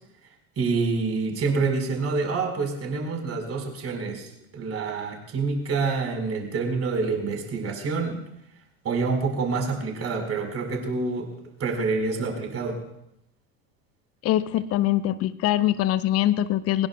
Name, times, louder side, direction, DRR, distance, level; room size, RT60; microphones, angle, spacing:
voice 1, 0.6-8.2 8.8-11.3 11.6-12.8, right 4 dB, 30° right, 3 dB, 4.7 m, -27 dB
voice 2, 14.2-16.9, left 13 dB, 30° left, 15 dB, 0.7 m, -23 dB
22.5 x 20.0 x 2.3 m, 0.77 s
figure-of-eight pair, 75°, 46 cm